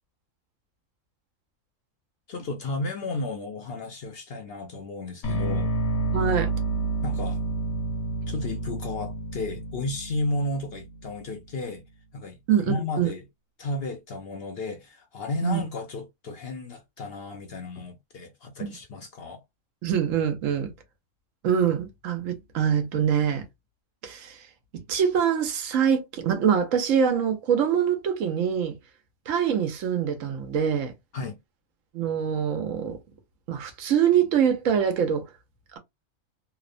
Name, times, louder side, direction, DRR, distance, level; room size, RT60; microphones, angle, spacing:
voice 1, 2.3-5.7 7.0-7.4 8.3-11.8 12.1-13.2 13.6-19.4 31.1-31.4, left 2 dB, 60° left, 0.7 m, -33 dB
sound 1, 5.2-11.3, right 2 dB, 80° left, 1.2 m, -29 dB
voice 2, 6.1-6.5 12.5-13.1 15.4-15.6 18.6-18.8 19.8-20.7 21.4-23.4 24.0-24.5 24.9-28.8 29.3-30.9 31.9-33.0 33.5-35.3, right 8 dB, 75° right, 1.1 m, -24 dB
2.9 x 2.1 x 2.4 m
omnidirectional pair, 1.4 m